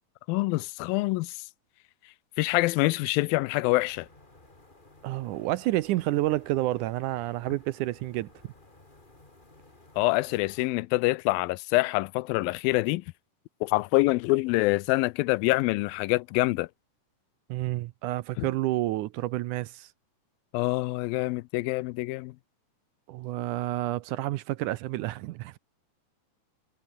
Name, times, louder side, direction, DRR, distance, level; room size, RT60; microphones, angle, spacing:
voice 1, 0.3-1.4 2.4-4.1 10.0-13.0 13.6-16.7 18.4-18.5 20.5-22.3, left 21 dB, 90° left, 2.4 m, -26 dB
sound 1, 3.7-10.7, left 2 dB, 15° left, 3.2 m, -56 dB
voice 2, 5.0-8.3 17.5-19.9 23.1-25.6, right 16 dB, 75° right, 1.9 m, -29 dB
omnidirectional pair, 4.1 m